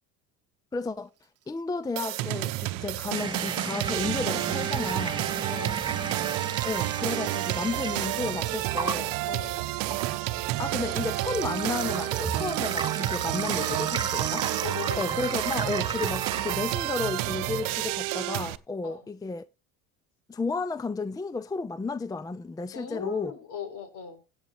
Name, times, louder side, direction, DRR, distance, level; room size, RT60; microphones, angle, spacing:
voice 1, 0.7-1.1 1.5-5.2 6.6-9.2 10.6-14.5 15.0-19.5 20.3-23.3, left 4 dB, 10° left, 0.5 m, -32 dB
sound 1, 2.0-18.6, right 19 dB, 70° right, 0.8 m, -30 dB
Rattle (instrument), 3.0-10.1 10.4-16.2, right 12 dB, 45° right, 1.0 m, -41 dB
sound 2, 3.1-16.6, right 3 dB, 15° right, 1.1 m, -36 dB
voice 2, 5.5-5.9 9.3-9.7 14.6-15.3 18.8-19.1 22.7-24.2, left 7 dB, 60° left, 4.5 m, -38 dB
16.5 x 8.0 x 3.0 m
supercardioid pair, 90°, 35 cm